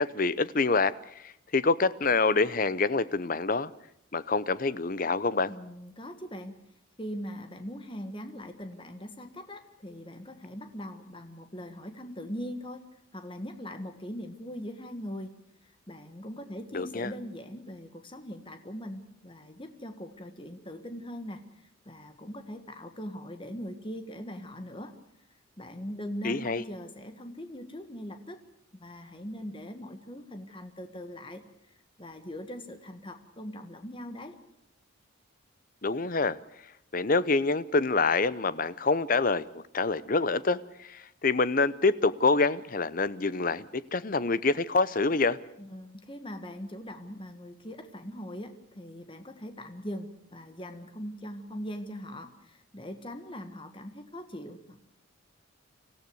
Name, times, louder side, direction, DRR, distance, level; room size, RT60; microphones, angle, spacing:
voice 1, 0.0-3.7 4.1-5.5 16.7-17.1 26.2-26.6 35.8-36.4 36.9-39.4 39.7-45.4, left 3 dB, 40° left, 0.7 m, -26 dB
voice 2, 5.5-6.6 7.0-12.8 13.1-15.3 15.6-21.4 21.8-24.9 25.6-28.4 28.7-34.4 45.6-54.8, equal, 25° left, 1.6 m, -41 dB
25.0 x 15.5 x 7.9 m
head